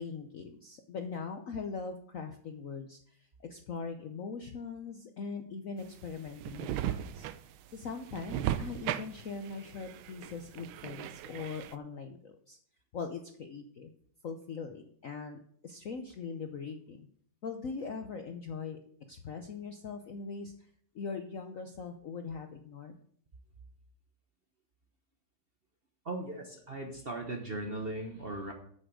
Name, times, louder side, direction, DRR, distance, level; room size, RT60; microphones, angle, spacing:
voice 1, 0.0-12.6 12.9-13.9 14.2-17.1 17.4-18.8 19.1-20.5 20.9-23.0, left 5 dB, 60° left, 6 dB, 0.8 m, -41 dB
sound 1, 5.8-11.7, right 11 dB, 80° right, 1.4 m, -37 dB
voice 2, 26.0-28.5, right 2 dB, 40° right, 3 dB, 0.9 m, -38 dB
8.9 x 6.8 x 6.2 m, 0.62 s
omnidirectional pair, 2.2 m